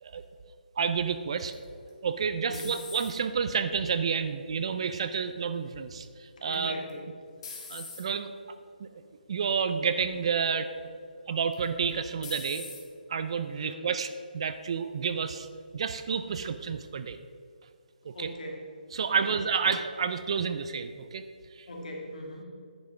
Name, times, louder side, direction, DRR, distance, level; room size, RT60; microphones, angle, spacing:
voice 1, 0.8-1.5 2.0-6.7 7.7-8.3 8.8-8.9 9.3-10.7 11.3-12.7 13.1-15.5 15.7-17.2 18.1-18.3 18.9-21.2 21.6-21.7, right 6 dB, 35° right, 10 dB, 0.4 m, -30 dB
sound 1, 1.5-3.4 4.0-4.5 6.5-6.9 7.4-8.0 8.8-9.1 9.5-9.6 11.5-11.9 12.2-12.8, left 4 dB, 30° left, 1.6 m, -43 dB
voice 2, 2.4-2.7 6.4-7.1 13.5-13.8 18.1-18.7 19.1-19.7 21.7-22.4, left 1 dB, 50° left, 0 dB, 2.1 m, -41 dB
10.0 x 5.4 x 5.9 m, 2.2 s
hypercardioid pair, 165°, 5 cm